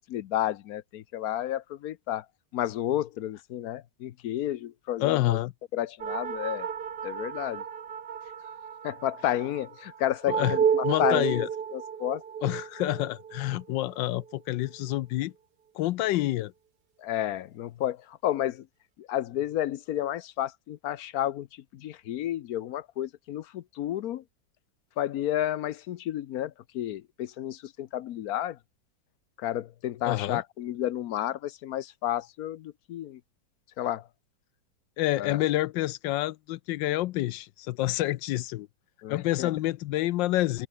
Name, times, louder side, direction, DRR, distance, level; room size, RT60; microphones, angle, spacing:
voice 1, 0.1-2.3 2.5-5.4 5.7-6.7 7.0-7.6 8.8-12.2 17.0-18.7 19.0-24.2 25.0-28.6 29.4-33.2 33.8-34.1 35.2-35.4 39.0-39.5, left 12 dB, 65° left, 1.0 m, -31 dB
voice 2, 5.0-5.5 10.3-10.6 10.8-11.5 12.4-15.3 15.7-16.5 30.0-30.4 35.0-38.7 39.1-40.7, left 16 dB, 85° left, 1.3 m, -28 dB
sound 1, 6.0-14.8, right 7 dB, 65° right, 2.1 m, -32 dB
omnidirectional pair, 1.9 m